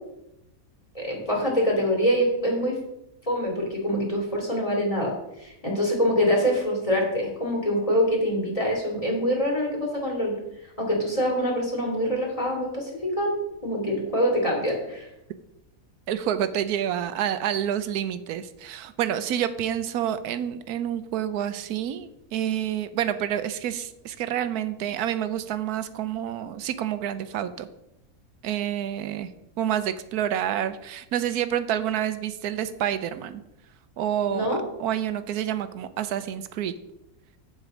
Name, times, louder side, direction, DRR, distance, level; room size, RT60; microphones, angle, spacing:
voice 1, 0.9-2.8 3.3-10.3 10.8-12.9 13.2-13.3 13.6-15.1 34.3-34.6, equal, 20° left, -2 dB, 2.7 m, -25 dB
voice 2, 16.1-27.7 28.4-29.3 29.6-33.4 34.0-36.8, right 10 dB, 90° right, 12 dB, 1.2 m, -28 dB
8.1 x 7.4 x 5.1 m, 0.87 s
omnidirectional pair, 1.6 m